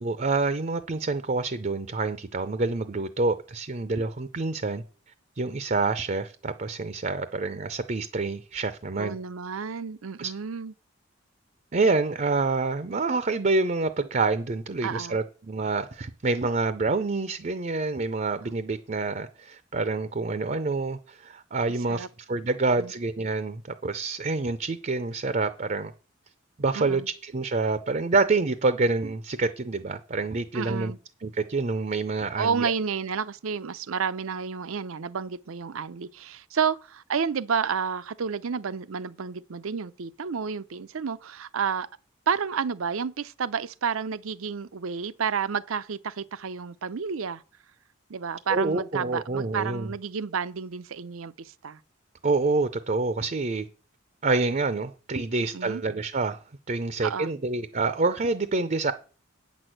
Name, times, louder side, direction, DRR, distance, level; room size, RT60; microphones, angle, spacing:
voice 1, 0.0-4.8 5.4-9.2 10.2-10.3 11.7-25.9 26.6-30.9 31.2-32.7 48.5-49.9 52.2-53.7 54.2-56.4 56.7-58.9, right 3 dB, 40° right, 0.5 m, -27 dB
voice 2, 9.0-10.7 14.8-15.2 21.9-22.1 22.7-22.9 26.7-27.1 30.5-31.0 32.4-41.9 42.3-47.4 48.1-51.8 55.5-55.8 57.0-57.3, right 6 dB, 75° right, 0.6 m, -30 dB
8.9 x 6.2 x 7.8 m
head